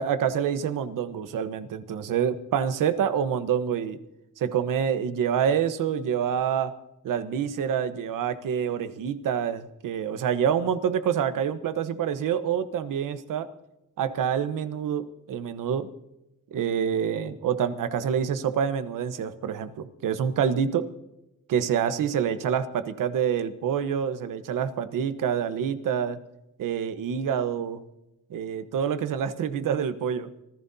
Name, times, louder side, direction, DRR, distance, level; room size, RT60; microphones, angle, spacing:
voice 1, 0.0-4.0 4.4-6.7 7.0-13.5 14.0-15.9 16.5-20.8 21.5-26.2 26.6-27.8 28.3-30.3, right 8 dB, 90° right, 11 dB, 1.1 m, -27 dB
25.0 x 15.0 x 2.8 m, 0.90 s
cardioid pair, 90°, 31 cm